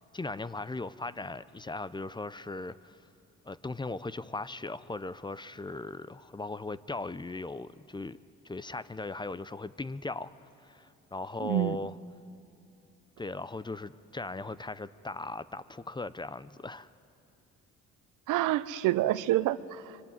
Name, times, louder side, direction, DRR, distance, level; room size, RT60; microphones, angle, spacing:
voice 1, 0.0-3.0 3.4-8.2 8.4-11.9 13.2-16.9, left 3 dB, 15° left, 16 dB, 0.6 m, -38 dB
voice 2, 11.4-11.8 18.3-19.9, right 15 dB, 90° right, 16 dB, 0.7 m, -27 dB
24.5 x 23.5 x 9.5 m, 2.7 s
cardioid pair, 90°, 30 cm